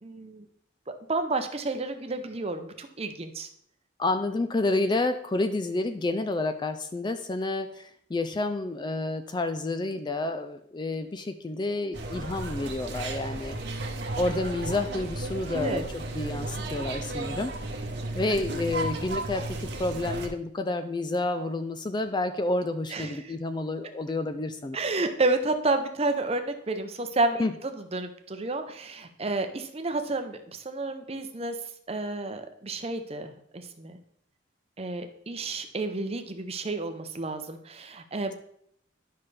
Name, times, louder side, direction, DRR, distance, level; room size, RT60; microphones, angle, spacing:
voice 1, 0.0-0.4 0.9-3.5 15.5-15.8 22.9-23.2 24.7-31.6 31.9-34.0 34.8-38.3, right 2 dB, 30° right, 7 dB, 0.7 m, -30 dB
voice 2, 4.0-13.6 14.2-17.5 18.1-24.8 27.4-27.5, left 2 dB, 25° left, 9 dB, 0.4 m, -29 dB
sound 1, 11.9-20.3, right 2 dB, 60° right, 1.0 m, -34 dB
10.5 x 5.6 x 3.3 m, 0.69 s
head